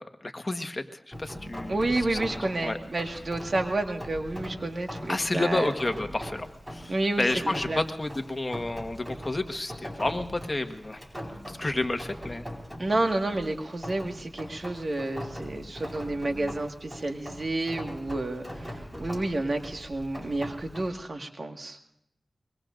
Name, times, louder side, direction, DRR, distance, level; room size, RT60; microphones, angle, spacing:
voice 1, 0.0-2.2 2.6-2.8 5.1-11.1 11.5-12.5, left 2 dB, 40° left, 6 dB, 1.4 m, -30 dB
Rain, 1.1-20.9, equal, 10° right, 4.5 m, -41 dB
voice 2, 1.7-5.7 6.9-7.2 7.7-7.8 12.8-21.8, right 2 dB, 65° right, 4 dB, 1.7 m, -30 dB
24.5 x 22.5 x 2.6 m, 0.78 s
cardioid pair, 45°, 0 cm